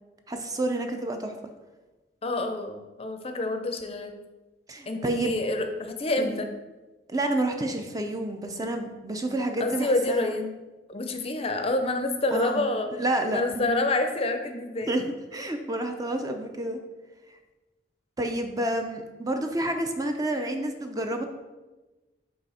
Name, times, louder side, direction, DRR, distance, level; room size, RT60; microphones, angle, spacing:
voice 1, 0.3-1.5 4.7-5.4 6.2-6.4 7.1-10.4 12.3-12.7 13.0-13.8 14.9-15.0 15.3-16.8 18.2-21.2, right 1 dB, 20° right, 5 dB, 0.5 m, -29 dB
voice 2, 2.2-4.1 4.9-6.5 9.6-10.5 10.9-12.9 13.3-14.9, left 2 dB, 35° left, 6 dB, 0.5 m, -27 dB
5.7 x 4.3 x 4.1 m, 1.2 s
head